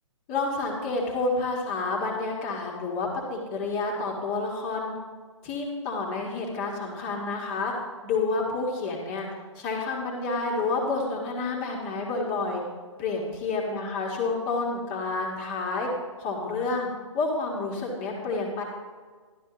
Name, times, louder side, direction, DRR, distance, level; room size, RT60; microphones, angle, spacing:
voice 1, 0.3-4.9 5.4-7.7 8.0-9.3 9.5-12.6 13.0-15.9 16.2-16.9 17.1-18.6, left 3 dB, 25° left, -1 dB, 1.6 m, -29 dB
12.0 x 11.5 x 3.0 m, 1.5 s
figure-of-eight pair, 130°, 17 cm